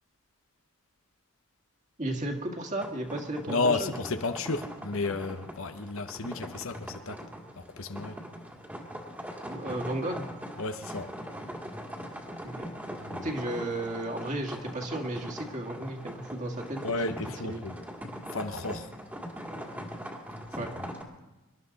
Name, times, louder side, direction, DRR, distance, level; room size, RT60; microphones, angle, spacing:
voice 1, 2.0-3.9 9.4-10.3 12.4-12.7 13.2-16.8 17.4-17.6 20.6-20.7, right 1 dB, 35° right, 1.9 m, -34 dB
sound 1, 2.8-21.0, equal, 10° right, 1.8 m, -41 dB
voice 2, 3.5-7.2 7.6-8.2 10.6-11.1 13.0-13.3 16.8-17.7 18.3-18.9, left 3 dB, 75° left, 1.0 m, -32 dB
25.5 x 12.0 x 4.1 m
head